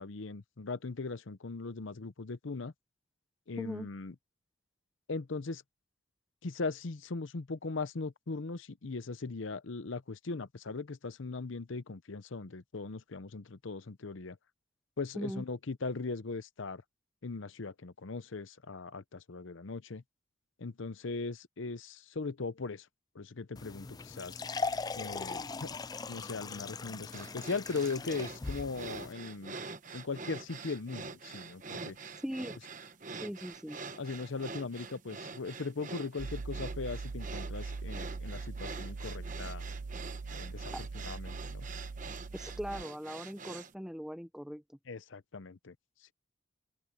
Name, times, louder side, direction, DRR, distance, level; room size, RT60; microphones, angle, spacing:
voice 1, 0.0-2.7 3.5-4.1 5.1-5.6 6.4-14.4 15.0-16.8 17.2-20.0 20.6-22.9 23.1-24.4 25.0-25.8 26.1-29.5 29.9-32.0 34.0-39.6 40.3-41.7 44.9-45.7, left 4 dB, 75° left, 0.7 m, -39 dB
voice 2, 3.6-3.9 15.1-15.4 32.2-32.6 33.2-33.8 40.7-40.8 42.3-44.6, equal, 5° right, 0.9 m, -39 dB
pouring water into glass, 23.6-29.1, left 4 dB, 20° left, 0.3 m, -39 dB
sound 1, 27.1-43.7, right 4 dB, 40° right, 1.1 m, -45 dB
sound 2, 36.2-42.8, right 3 dB, 70° right, 0.6 m, -41 dB
open air
head